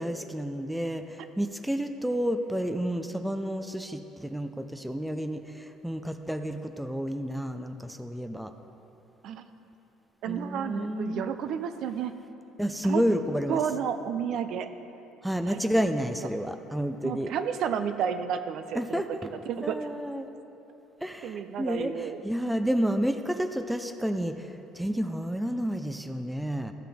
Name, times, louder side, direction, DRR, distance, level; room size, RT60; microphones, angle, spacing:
voice 1, 0.0-8.5 10.3-11.3 12.6-13.6 15.2-17.3 18.8-19.3 19.6-20.3 21.0-24.5 24.7-26.7, equal, 5° right, 7 dB, 0.4 m, -30 dB
voice 2, 10.2-12.1 12.8-13.0 13.5-14.7 15.5-15.6 17.0-19.8 21.2-22.2, right 8 dB, 60° right, 9 dB, 0.5 m, -31 dB
14.5 x 5.8 x 3.5 m, 3.0 s
cardioid pair, 120°, 0 cm